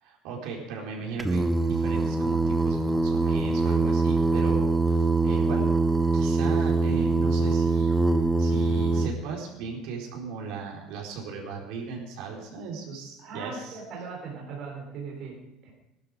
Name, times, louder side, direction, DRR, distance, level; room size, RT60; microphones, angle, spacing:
voice 1, 0.0-5.7 6.1-8.0 8.4-13.8, right 4 dB, 70° right, -2 dB, 4.5 m, -37 dB
Singing, 1.2-9.1, right 3 dB, 5° right, 0.7 m, -23 dB
voice 2, 13.2-15.7, right 4 dB, 45° right, -2 dB, 3.4 m, -39 dB
19.0 x 12.0 x 5.1 m, 0.92 s
cardioid pair, 170°, 0 cm